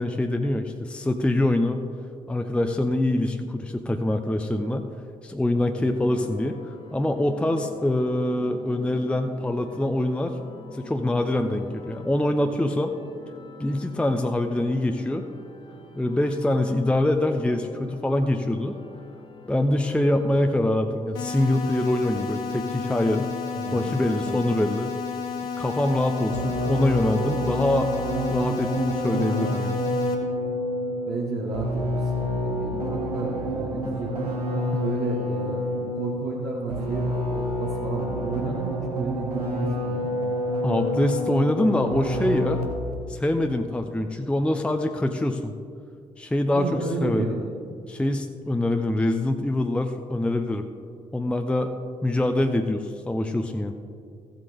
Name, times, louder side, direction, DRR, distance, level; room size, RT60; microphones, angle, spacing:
voice 1, 0.0-1.8 2.3-4.9 5.2-6.6 6.9-10.3 10.7-12.9 13.6-15.2 16.0-18.8 19.5-23.3 23.7-24.9 25.6-27.9 28.3-29.8 40.6-42.6 43.1-45.5 46.2-47.3 47.9-50.7 51.1-51.7 52.0-53.7, left 1 dB, 5° left, 6 dB, 0.6 m, -24 dB
sound 1, 6.0-20.6, left 2 dB, 25° left, 1.5 m, -46 dB
sound 2, 21.1-30.1, left 6 dB, 70° left, 1.0 m, -32 dB
voice 2, 23.5-24.4 31.0-34.3 34.8-35.6 36.0-40.1 46.5-47.5, right 3 dB, 55° right, -5 dB, 1.5 m, -32 dB
sound 3, 26.3-43.0, equal, 85° right, 0.9 m, -28 dB
15.5 x 7.6 x 3.5 m, 2.3 s
figure-of-eight pair, 40°, 19 cm